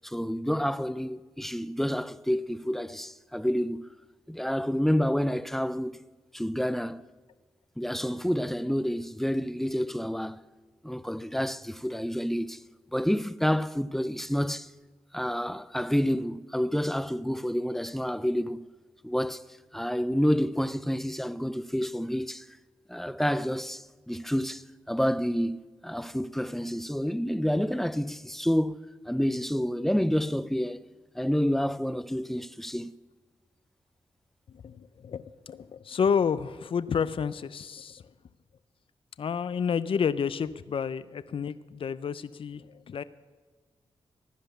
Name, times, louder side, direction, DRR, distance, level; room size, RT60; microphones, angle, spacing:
voice 1, 0.0-3.9 4.3-6.0 6.3-7.0 7.8-10.4 10.8-12.6 12.9-14.7 15.1-18.7 19.0-19.4 19.7-22.5 22.9-28.8 29.1-30.8 31.1-32.9, equal, 5° left, 0.5 m, -29 dB
voice 2, 34.5-38.0 39.2-43.0, left 6 dB, 65° left, 0.5 m, -30 dB
15.5 x 10.5 x 6.7 m
cardioid pair, 65°, 10 cm